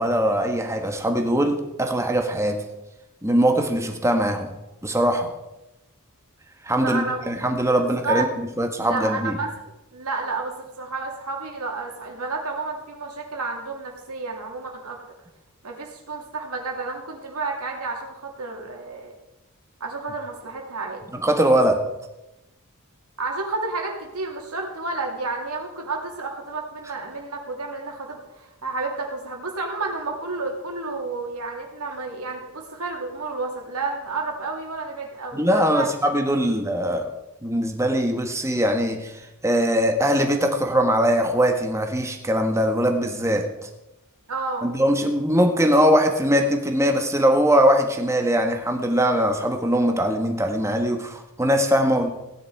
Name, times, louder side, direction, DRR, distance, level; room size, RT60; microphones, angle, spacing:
voice 1, 0.0-2.6 3.2-4.5 4.8-5.3 6.6-8.3 8.6-9.4 21.2-21.8 35.3-37.1 37.4-39.1 39.4-43.7 44.6-52.1, equal, 15° right, 4 dB, 1.5 m, -21 dB
voice 2, 6.8-7.3 7.7-8.3 8.8-15.0 15.6-19.1 19.8-21.0 23.2-35.9 36.4-36.5 44.3-44.7, right 3 dB, 85° right, 1 dB, 2.8 m, -31 dB
16.5 x 9.8 x 4.7 m, 0.97 s
head